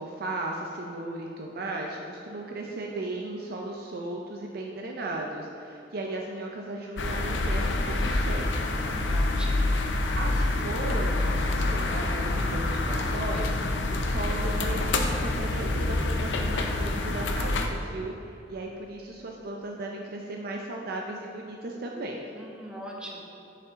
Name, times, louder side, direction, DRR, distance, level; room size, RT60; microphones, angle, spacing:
voice 1, 0.0-8.6 10.1-22.2, right 2 dB, 55° right, 0 dB, 0.5 m, -36 dB
sound 1, 7.0-17.7, left 2 dB, 90° left, 0.6 m, -27 dB
voice 2, 8.7-9.8 22.3-23.2, equal, 5° right, -3 dB, 0.9 m, -41 dB
6.6 x 5.8 x 3.6 m, 2.9 s
head